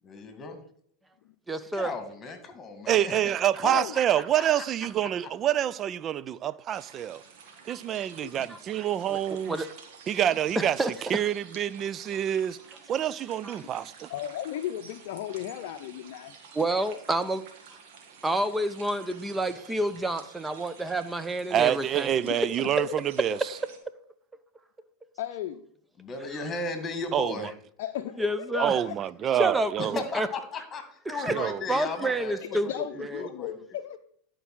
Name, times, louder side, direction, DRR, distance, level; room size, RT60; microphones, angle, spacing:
voice 1, 0.1-0.6 1.7-3.1 4.1-4.2 4.5-4.7 26.0-27.5 29.8-32.8 33.2-33.5, left 3 dB, 25° left, 2.2 m, -35 dB
voice 2, 1.5-1.9 8.5-8.6 9.1-9.2 9.5-9.7 10.6-10.9 13.4-13.6 16.5-17.4 18.2-22.1 28.2-28.8 29.4-30.3 31.1-31.4 31.7-32.7 33.0-33.3, right 1 dB, 10° right, 0.8 m, -29 dB
voice 3, 2.9-7.2 7.7-9.6 10.1-10.8 11.1-12.6 12.9-14.1 21.5-23.4 27.1-27.3 28.6-30.0 31.3-31.6, right 10 dB, 35° right, 0.4 m, -27 dB
voice 4, 3.6-4.0 8.2-8.5 13.7-13.8 14.1-16.3 22.3-22.5 22.8-23.4 25.2-25.6 27.8-29.0 32.5-34.0, left 11 dB, 65° left, 0.6 m, -36 dB
sound 1, 6.7-23.8, right 6 dB, 65° right, 1.9 m, -50 dB
11.0 x 4.7 x 6.2 m
hypercardioid pair, 95°, 0 cm